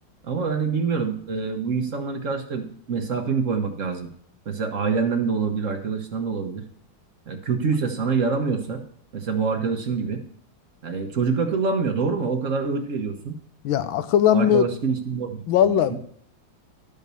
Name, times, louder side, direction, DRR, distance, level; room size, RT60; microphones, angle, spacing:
voice 1, 0.2-4.1 4.5-6.6 7.3-8.8 9.1-10.2 10.8-13.4 14.3-16.0, right 5 dB, 50° right, 5 dB, 1.1 m, -26 dB
voice 2, 13.6-14.7 15.5-16.0, left 9 dB, 80° left, 12 dB, 1.5 m, -19 dB
12.0 x 5.2 x 6.8 m, 0.62 s
omnidirectional pair, 2.2 m